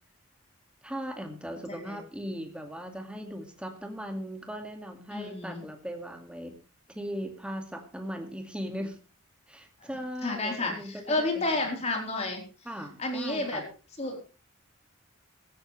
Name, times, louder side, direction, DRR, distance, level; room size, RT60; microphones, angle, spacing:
voice 1, 0.8-6.5 6.9-9.0 9.5-11.5 12.7-13.6, equal, 5° right, 4 dB, 2.1 m, -38 dB
voice 2, 5.1-5.6 9.8-9.9 10.2-12.4 13.0-13.6 14.0-14.2, left 2 dB, 30° left, 2 dB, 4.1 m, -31 dB
17.0 x 14.5 x 3.3 m, 0.35 s
head